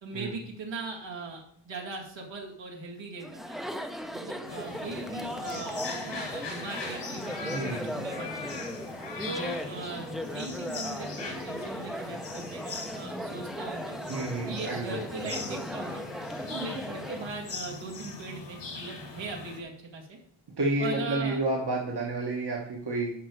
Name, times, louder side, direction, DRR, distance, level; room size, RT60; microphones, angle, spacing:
voice 1, 0.0-3.6 4.1-8.4 9.3-14.0 14.5-16.0 16.5-20.2 20.8-21.4, right 3 dB, 85° right, -1 dB, 2.3 m, -39 dB
Chatter, 3.2-17.3, equal, ahead, 0.6 m, -38 dB
sound 1, 4.4-19.6, left 4 dB, 70° left, 2.0 m, -41 dB
voice 2, 7.5-7.8 14.1-15.4 20.6-23.1, right 2 dB, 65° right, -1 dB, 1.6 m, -30 dB
12.0 x 5.3 x 4.7 m, 0.64 s
wide cardioid pair, 135°, 43 cm